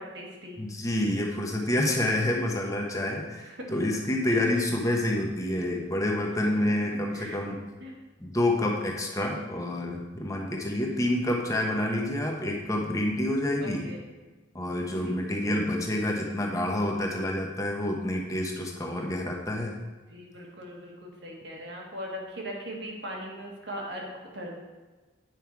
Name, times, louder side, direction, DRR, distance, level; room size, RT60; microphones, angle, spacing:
voice 1, 0.0-0.6 3.4-3.6 4.3-4.6 6.4-6.7 7.1-7.4 7.8-7.9 9.3-9.4 13.6-14.0 14.9-15.2 20.1-24.6, equal, 60° right, -1 dB, 1.7 m, -40 dB
voice 2, 0.6-3.4 3.7-7.6 8.2-13.8 14.5-19.7, left 1 dB, 15° left, 0 dB, 1.0 m, -28 dB
9.3 x 5.5 x 4.7 m, 1.2 s
head